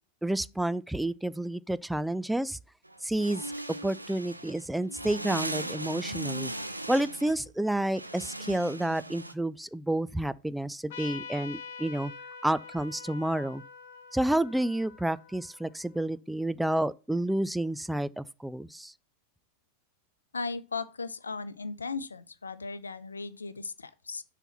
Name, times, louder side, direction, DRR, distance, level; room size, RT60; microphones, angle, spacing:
voice 1, 0.2-2.6 3.0-3.5 3.8-6.5 6.9-12.1 12.4-13.6 14.1-18.9, right 1 dB, 5° right, 0.3 m, -30 dB
sound 1, 2.9-9.3, right 1 dB, 85° right, 0.7 m, -38 dB
Trumpet, 10.9-16.0, left 5 dB, 55° left, 1.3 m, -45 dB
voice 2, 20.3-24.2, left 4 dB, 75° left, 0.6 m, -37 dB
6.9 x 4.2 x 5.6 m
figure-of-eight pair, 90°, 0 cm